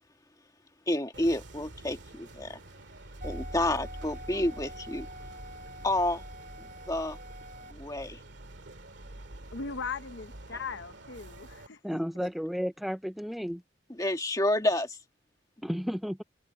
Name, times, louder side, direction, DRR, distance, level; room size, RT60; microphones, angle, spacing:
voice 1, 0.9-2.6 3.2-5.1 5.8-6.2 6.6-7.2 7.7-8.2 10.5-10.6 13.9-15.0, left 1 dB, 20° left, 1.7 m, -29 dB
sound 1, 1.1-11.7, right 2 dB, 70° right, 2.1 m, -48 dB
sound 2, 3.2-7.7, equal, 45° right, 4.3 m, -43 dB
voice 2, 9.5-11.8, left 5 dB, 70° left, 0.8 m, -38 dB
voice 3, 11.8-13.6 15.6-16.2, equal, ahead, 0.4 m, -33 dB
head